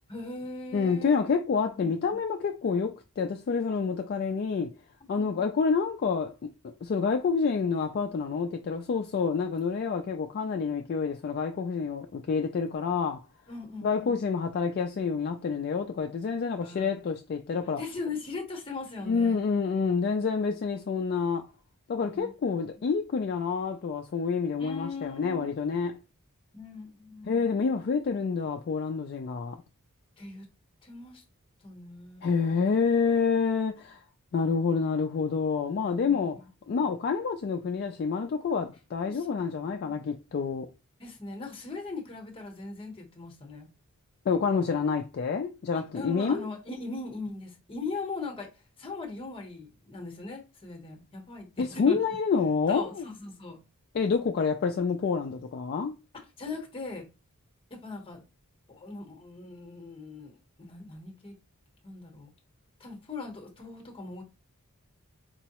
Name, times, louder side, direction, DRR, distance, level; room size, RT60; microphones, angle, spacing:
voice 1, 0.1-1.3 1.7-2.2 5.0-5.5 13.5-14.2 16.6-17.0 17.8-19.4 22.1-22.3 24.6-25.5 26.5-27.5 30.2-30.5 30.8-31.2 31.6-32.5 35.8-36.2 39.0-40.1 41.0-43.7 45.7-48.5 48.8-52.0 52.7-53.6 56.1-57.1 57.7-58.2 58.7-61.4 61.8-62.3 62.8-64.2, left 3 dB, 25° left, 0.9 m, -40 dB
voice 2, 0.7-4.7 5.1-13.2 13.8-17.8 19.1-21.4 21.9-25.9 27.3-29.6 32.2-34.0 34.3-36.4 36.7-40.7 44.3-46.5 51.6-53.0 53.9-55.9, left 5 dB, 45° left, 0.3 m, -28 dB
4.5 x 2.0 x 2.8 m
head